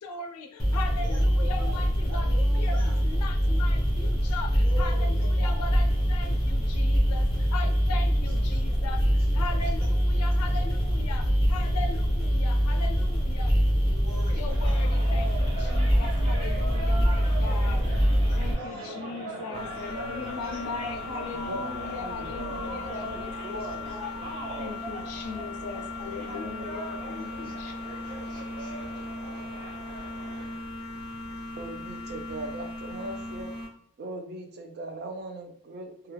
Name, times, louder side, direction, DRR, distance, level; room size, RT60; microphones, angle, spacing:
voice 1, 0.0-9.1 9.3-13.5 14.3-17.8 18.4-24.2 24.6-27.7, left 4 dB, 75° left, 5 dB, 0.4 m, -39 dB
sound 1, 0.6-18.5, equal, ahead, 0.9 m, -24 dB
voice 2, 1.0-3.0 4.4-5.7 7.6-7.8 8.1-8.5 8.7-8.9 9.2-10.7 13.7-14.9 16.6-20.7 22.9-24.0 25.7-26.3 27.0-27.8 28.0-29.5, equal, 80° right, -5 dB, 0.9 m, -46 dB
sound 2, 14.3-30.5, right 2 dB, 25° right, 0.7 m, -40 dB
sound 3, 19.5-33.7, left 2 dB, 25° left, 0.7 m, -38 dB
voice 3, 21.9-22.9 31.6-33.5 34.0-36.1, right 2 dB, 50° right, 4 dB, 0.4 m, -39 dB
2.2 x 2.2 x 3.1 m, 0.65 s
head